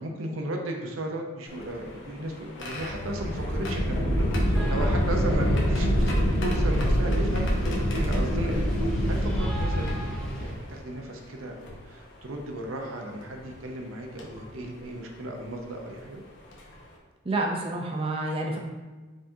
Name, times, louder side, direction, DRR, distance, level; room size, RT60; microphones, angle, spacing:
voice 1, 0.0-9.9 10.4-16.2, right 1 dB, 85° right, 2 dB, 0.7 m, -35 dB
sound 1, 1.5-10.8 11.7-11.8 13.2-13.4 14.2-14.4 16.0-16.1 16.5-16.7, equal, 60° left, 0.8 m, -26 dB
sound 2, 4.5-10.5, equal, 5° left, 0.9 m, -38 dB
voice 2, 17.3-18.6, right 2 dB, 30° right, 0 dB, 0.5 m, -28 dB
5.1 x 3.6 x 2.7 m, 1.3 s
head